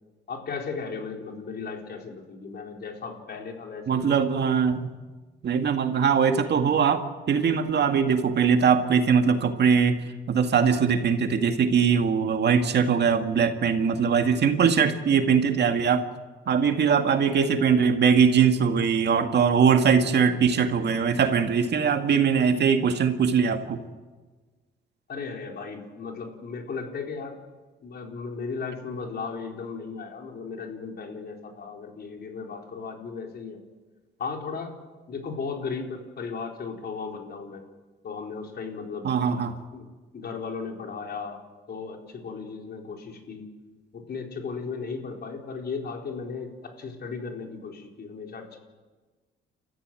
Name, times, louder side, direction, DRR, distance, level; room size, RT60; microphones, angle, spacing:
voice 1, 0.3-4.2 25.1-27.4 27.8-33.6 34.2-34.7 35.1-37.6 38.0-39.4 39.7-39.8 40.1-41.4 41.7-43.4 43.9-48.6, left 5 dB, 55° left, 2 dB, 4.3 m, -36 dB
voice 2, 3.9-4.9 5.4-16.0 16.5-23.8 39.0-39.6, right 6 dB, 60° right, 6 dB, 2.1 m, -21 dB
30.0 x 14.5 x 7.8 m, 1.3 s
cardioid pair, 90°, 20 cm